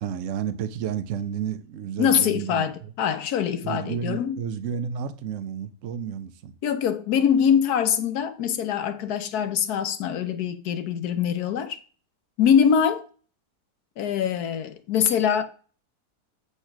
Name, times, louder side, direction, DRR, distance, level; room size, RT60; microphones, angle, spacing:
voice 1, 0.0-2.6 3.6-6.5, right 8 dB, 60° right, 1.0 m, -31 dB
voice 2, 2.0-4.4 6.6-11.8 12.4-13.1 14.0-15.4, left 8 dB, 70° left, 1.3 m, -23 dB
8.3 x 3.2 x 5.9 m
omnidirectional pair, 1.7 m